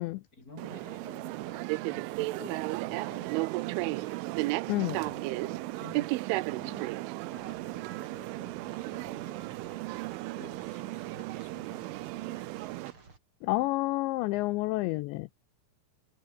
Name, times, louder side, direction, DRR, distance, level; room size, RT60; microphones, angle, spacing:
voice 1, 0.3-4.2 4.9-6.1 6.5-12.7, left 2 dB, 15° left, 8.2 m, -52 dB
sound 1, 0.6-12.9, right 20 dB, 80° right, 3.1 m, -34 dB
voice 2, 4.7-5.0 13.4-15.3, left 20 dB, 85° left, 2.5 m, -29 dB
sound 2, 7.3-13.2, right 4 dB, 25° right, 4.3 m, -55 dB
omnidirectional pair, 5.9 m